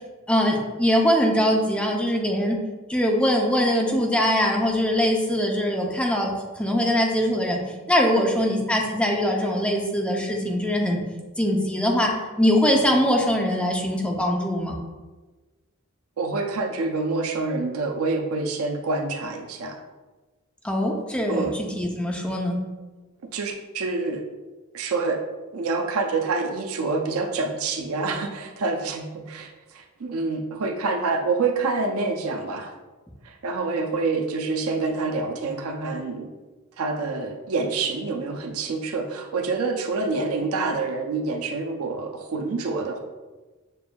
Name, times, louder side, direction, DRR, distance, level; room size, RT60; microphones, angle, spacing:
voice 1, 0.3-2.6 2.9-6.3 6.6-7.6 7.9-11.0 11.4-12.1 12.4-14.7 20.6-22.6, equal, 5° left, 0 dB, 0.5 m, -22 dB
voice 2, 16.2-19.8 21.3-21.6 23.3-24.2 24.7-25.2 25.5-29.5 29.7-32.7 33.2-36.3 36.8-43.0, right 3 dB, 80° right, 4 dB, 0.5 m, -27 dB
6.6 x 2.6 x 2.2 m, 1.2 s
head